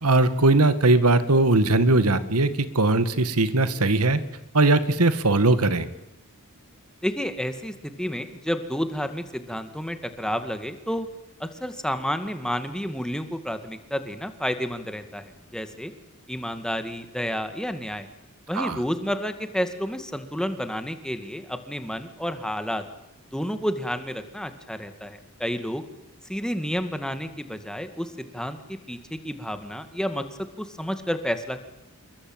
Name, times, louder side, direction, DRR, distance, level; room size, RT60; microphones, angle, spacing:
voice 1, 0.0-4.2 4.5-5.9 18.5-18.8, right 2 dB, 85° right, 13 dB, 1.8 m, -20 dB
voice 2, 7.0-11.1 11.4-15.9 16.3-18.1 18.5-22.8 23.3-25.8 26.3-30.2 30.6-31.6, equal, 5° left, 8 dB, 2.2 m, -30 dB
28.0 x 23.0 x 9.0 m, 0.91 s
head